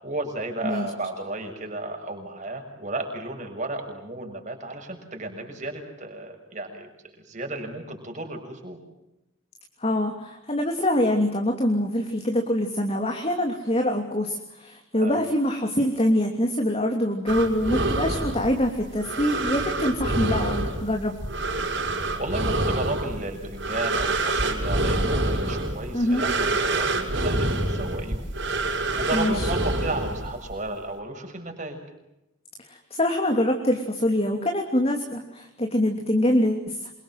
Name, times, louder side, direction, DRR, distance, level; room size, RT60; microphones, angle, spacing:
voice 1, 0.0-8.8 14.9-15.2 22.2-28.3 28.5-31.8, right 2 dB, 35° right, 3 dB, 6.7 m, -33 dB
voice 2, 9.8-21.2 25.9-26.2 29.1-29.5 32.7-36.9, left 1 dB, 30° left, 3 dB, 2.9 m, -24 dB
sound 1, 17.3-30.6, right 2 dB, 55° right, 5.7 m, -27 dB
28.0 x 25.0 x 7.7 m, 0.91 s
head